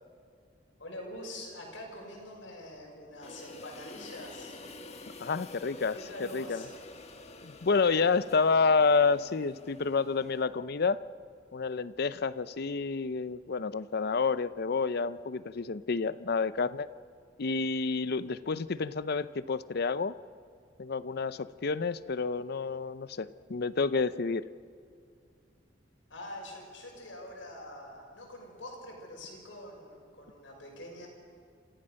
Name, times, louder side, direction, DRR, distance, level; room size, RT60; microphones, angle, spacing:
voice 1, 0.8-4.6 5.9-6.8 26.1-31.1, left 1 dB, 80° left, -1 dB, 6.3 m, -45 dB
sound 1, 3.2-10.4, left 2 dB, 35° left, 1.5 m, -48 dB
voice 2, 5.2-6.7 7.4-11.0 11.5-16.9 17.4-20.1 20.8-24.5, left 4 dB, 55° left, 15 dB, 0.6 m, -29 dB
27.5 x 15.5 x 6.4 m, 2.4 s
head